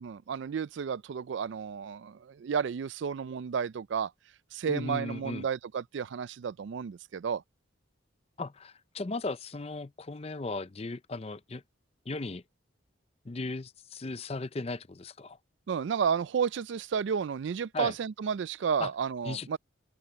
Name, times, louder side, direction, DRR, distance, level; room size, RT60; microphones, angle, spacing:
voice 1, 0.0-4.1 4.5-7.4 15.7-19.6, right 7 dB, 65° right, 0.3 m, -32 dB
voice 2, 4.7-5.5 8.4-11.6 12.1-12.4 13.2-15.4 17.7-18.0 18.8-18.9 19.2-19.6, left 3 dB, 30° left, 0.5 m, -36 dB
head